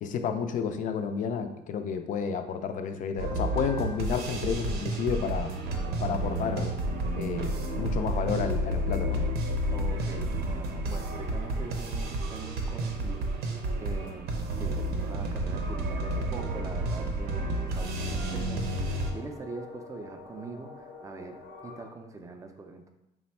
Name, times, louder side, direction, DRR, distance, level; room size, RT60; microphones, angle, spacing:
voice 1, 0.0-5.5 6.0-6.7 7.1-9.3, left 6 dB, 50° left, 7 dB, 0.4 m, -31 dB
sound 1, 3.2-19.1, right 1 dB, 70° right, 0.6 m, -31 dB
voice 2, 9.7-13.3 13.8-22.9, right 3 dB, 20° right, 5 dB, 0.4 m, -43 dB
sound 2, 16.1-21.8, left 3 dB, 80° left, 0.7 m, -49 dB
3.3 x 2.1 x 4.3 m, 0.92 s
cardioid pair, 110°, 17 cm